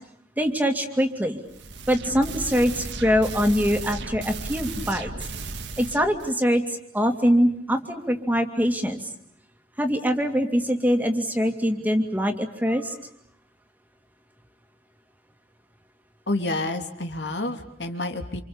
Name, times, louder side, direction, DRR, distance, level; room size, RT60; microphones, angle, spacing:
voice 1, 0.4-1.4 1.9-5.1 5.8-6.6 6.9-9.0 9.8-13.0, equal, 10° right, 5 dB, 2.4 m, -23 dB
sound 1, 1.5-6.4, right 3 dB, 85° right, 2.1 m, -35 dB
voice 2, 16.3-18.4, left 2 dB, 75° left, 6 dB, 3.1 m, -29 dB
29.0 x 27.0 x 7.2 m, 0.71 s
head